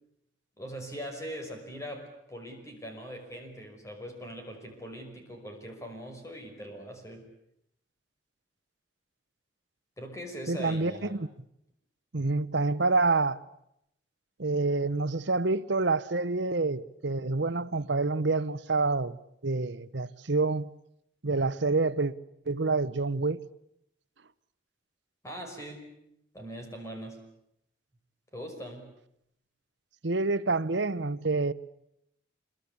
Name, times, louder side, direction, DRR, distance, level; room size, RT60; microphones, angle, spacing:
voice 1, 0.6-7.3 10.0-11.2 25.2-25.9 26.3-27.2 28.3-28.9, equal, 15° left, 5.6 m, -41 dB
voice 2, 10.5-11.3 12.1-13.4 14.4-19.2 19.4-20.7 21.2-22.1 22.5-23.4 30.0-31.5, right 3 dB, 75° right, 1.0 m, -27 dB
27.0 x 22.5 x 8.6 m
head